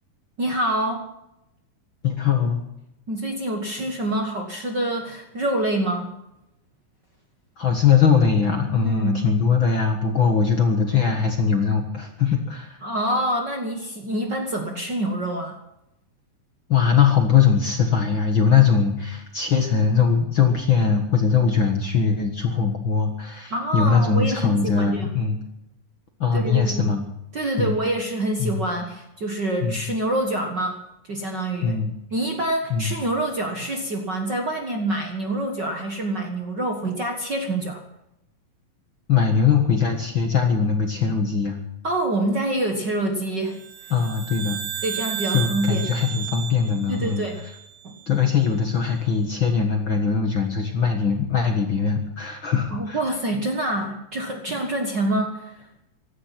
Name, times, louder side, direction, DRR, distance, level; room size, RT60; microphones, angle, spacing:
voice 1, 0.4-1.0 3.1-6.1 8.8-9.2 12.8-15.6 23.5-25.1 26.3-26.9 27.3-31.8 32.1-37.8 41.8-43.6 44.8-45.9 46.9-47.4 47.8-47.9 52.7-55.7, right 1 dB, 45° right, 3 dB, 1.6 m, -26 dB
voice 2, 2.0-2.6 7.6-12.8 16.7-25.4 26.2-27.0 27.6-27.8 28.4-28.6 29.6-29.8 31.6-31.9 32.7-32.9 39.1-41.6 43.9-44.6 45.3-47.3 48.1-53.0, left 6 dB, 45° left, 4 dB, 1.7 m, -21 dB
sound 1, 43.5-48.0, right 9 dB, 60° right, 2.6 m, -33 dB
16.5 x 14.0 x 5.9 m, 0.86 s
omnidirectional pair, 3.9 m